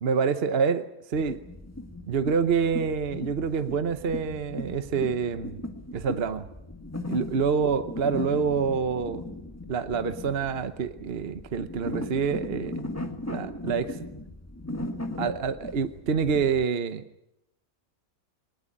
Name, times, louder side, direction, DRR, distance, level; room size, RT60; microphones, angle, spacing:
voice 1, 0.0-1.4 2.1-5.6 5.9-6.5 7.1-9.2 9.7-12.7 13.3-14.0 15.2-17.0, right 6 dB, 45° right, 10 dB, 1.1 m, -27 dB
sound 1, 1.1-16.6, left 1 dB, 10° left, 1.7 m, -38 dB
22.5 x 19.0 x 8.7 m, 0.85 s
omnidirectional pair, 1.5 m